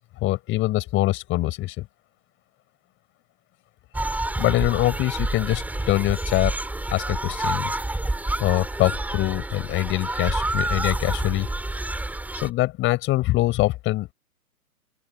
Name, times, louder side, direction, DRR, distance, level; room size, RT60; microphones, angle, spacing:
voice 1, 0.2-1.9 4.4-6.6 6.9-7.7 8.4-11.5 12.3-14.1, left 17 dB, 25° left, 6.6 m, -24 dB
sound 1, 3.9-12.5, right 2 dB, 5° right, 7.9 m, -28 dB
open air
hypercardioid pair, 130°, 44 cm